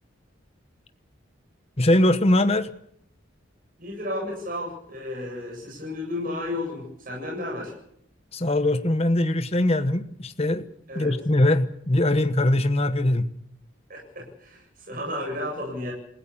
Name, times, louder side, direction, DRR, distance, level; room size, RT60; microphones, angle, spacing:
voice 1, 1.8-2.7 8.3-10.7 10.9-13.3, left 1 dB, 30° left, 10 dB, 1.1 m, -21 dB
voice 2, 3.8-7.7 10.9-11.1 13.9-15.9, left 1 dB, 45° right, -2 dB, 7.7 m, -33 dB
29.0 x 16.5 x 7.1 m, 0.72 s
head